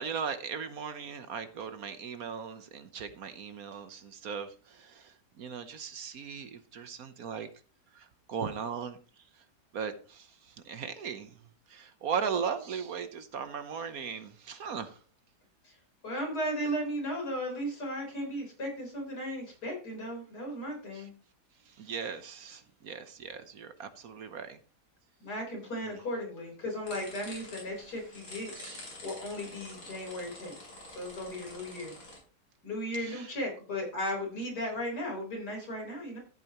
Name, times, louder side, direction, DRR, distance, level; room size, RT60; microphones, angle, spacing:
voice 1, 0.0-7.5 7.9-9.0 9.7-11.4 11.7-15.0 20.9-21.1 21.7-24.6 25.8-26.0 28.5-28.9 33.0-33.3, right 6 dB, 60° right, 10 dB, 1.3 m, -38 dB
voice 2, 16.0-21.1 25.2-28.5 29.0-30.5 30.9-31.9 32.6-36.2, equal, 70° left, -1 dB, 4.7 m, -36 dB
sound 1, 26.9-32.2, left 1 dB, 55° left, 5.0 m, -47 dB
13.5 x 8.6 x 3.0 m, 0.38 s
omnidirectional pair, 1.8 m